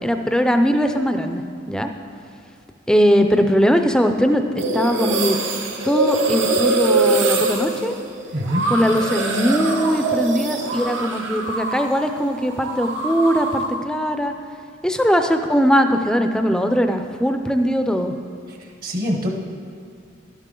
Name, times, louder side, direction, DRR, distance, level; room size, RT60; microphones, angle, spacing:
voice 1, 0.0-1.4 1.7-1.9 2.9-5.4 5.8-7.9 8.7-14.3 14.8-18.1, equal, 5° left, 6 dB, 0.4 m, -20 dB
sound 1, 4.6-12.0 12.2-13.8, right 3 dB, 80° right, 1.1 m, -23 dB
voice 2, 8.3-8.6 18.8-19.3, equal, 50° right, 2 dB, 1.0 m, -23 dB
11.5 x 11.5 x 3.8 m, 2.3 s
head